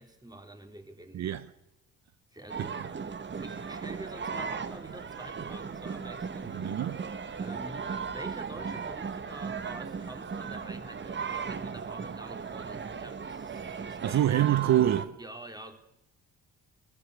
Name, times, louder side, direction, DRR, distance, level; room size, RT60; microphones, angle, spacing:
voice 1, 0.0-1.3 2.3-2.9 3.4-6.7 7.3-14.2 15.2-15.8, right 1 dB, 15° right, 3.7 m, -47 dB
voice 2, 1.1-1.4 2.6-2.7 6.5-7.0 14.0-15.2, right 12 dB, 60° right, 1.0 m, -26 dB
sound 1, 2.5-15.1, right 6 dB, 40° right, 1.7 m, -37 dB
21.5 x 16.5 x 8.3 m
cardioid pair, 90°, 30 cm